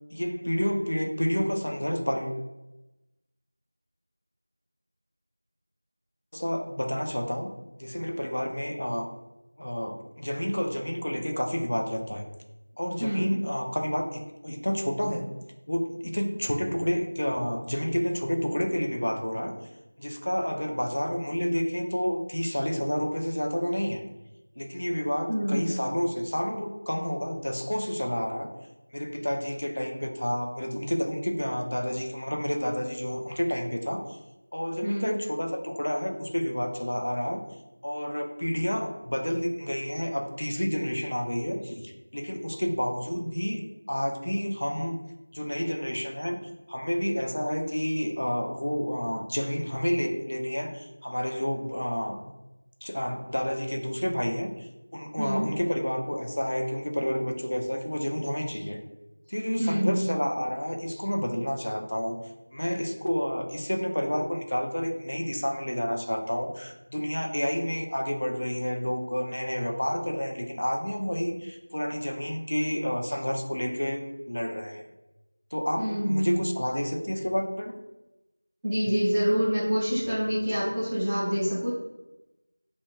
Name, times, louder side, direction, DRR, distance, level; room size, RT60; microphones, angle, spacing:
voice 1, 0.1-2.4 6.3-7.5 7.8-9.1 9.6-12.3 12.8-15.3 15.7-19.5 20.0-24.0 24.6-28.5 28.9-34.2 34.5-37.4 37.8-45.0 45.3-52.3 52.8-58.8 59.3-62.2 62.5-74.9 75.5-77.7, equal, 65° left, 3 dB, 0.5 m, -30 dB
voice 2, 13.0-13.3 25.3-25.7 34.8-35.1 55.2-55.5 59.6-60.0 75.8-76.4 78.6-81.7, equal, 5° right, -14 dB, 0.4 m, -26 dB
2.5 x 2.1 x 3.0 m, 0.99 s
figure-of-eight pair, 175°, 0 cm